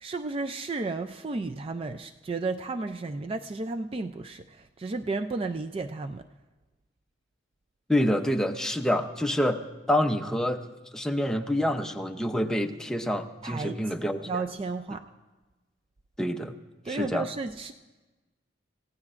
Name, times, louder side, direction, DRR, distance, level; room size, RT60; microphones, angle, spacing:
voice 1, 0.0-6.2 13.4-14.0 14.3-15.0 16.8-17.7, right 3 dB, 30° right, 7 dB, 0.4 m, -33 dB
voice 2, 7.9-10.6 10.9-14.4 16.2-16.5 16.9-17.3, equal, 5° left, 5 dB, 0.7 m, -27 dB
29.0 x 16.0 x 2.5 m, 1.2 s
head